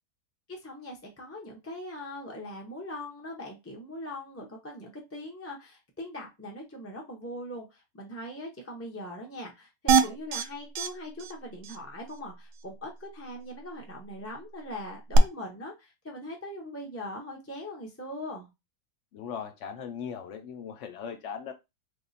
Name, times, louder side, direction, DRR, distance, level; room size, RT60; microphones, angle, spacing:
voice 1, 0.5-18.5, left 1 dB, 15° left, 0.5 m, -41 dB
sound 1, 9.9-10.4 10.8-10.9 11.2-11.3 11.6-11.8 15.1-15.2, right 6 dB, 75° right, 1.1 m, -22 dB
voice 2, 19.1-21.5, left 7 dB, 75° left, 0.6 m, -38 dB
3.2 x 2.8 x 4.0 m
omnidirectional pair, 1.8 m